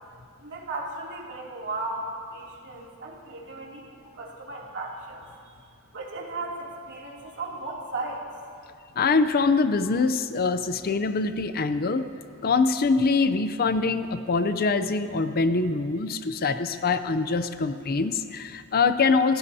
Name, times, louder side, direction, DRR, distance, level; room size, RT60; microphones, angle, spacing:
voice 1, 0.4-5.3 5.6-5.7 5.9-8.2, right 2 dB, 55° right, -3 dB, 2.7 m, -36 dB
voice 2, 9.0-12.0 12.4-19.4, left 4 dB, 45° left, 10 dB, 0.5 m, -24 dB
27.0 x 16.0 x 2.8 m, 2.3 s
head